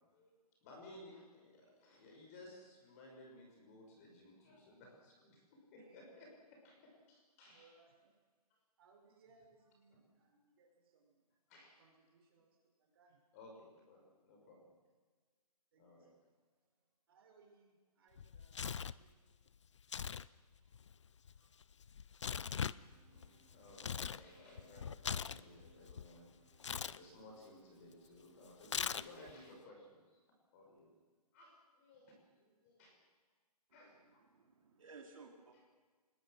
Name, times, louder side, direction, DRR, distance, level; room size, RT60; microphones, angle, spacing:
voice 1, 0.1-5.4 5.7-7.7 9.9-10.0 11.5-11.8 13.3-14.7 15.8-16.1 21.4-21.5 23.1-26.2 26.8-30.2 30.5-30.9 31.3-33.0 33.7-34.2, left 1 dB, 20° left, 0 dB, 5.6 m, -58 dB
voice 2, 7.4-8.3 8.8-11.4 11.8-13.4 15.7-19.5 19.8-20.8, right 4 dB, 35° right, -1 dB, 6.1 m, -70 dB
Tearing, 18.2-19.0 19.8-20.3 20.5-24.2 24.6-26.1 26.6-27.0 28.6-29.3, left 7 dB, 45° left, 0.6 m, -41 dB
sound 1, 22.8-29.0, right 5 dB, 15° right, 2.0 m, -70 dB
voice 3, 33.7-35.6, right 4 dB, 55° right, 1 dB, 3.6 m, -58 dB
27.0 x 21.0 x 6.5 m, 1.4 s
hypercardioid pair, 170°, 21 cm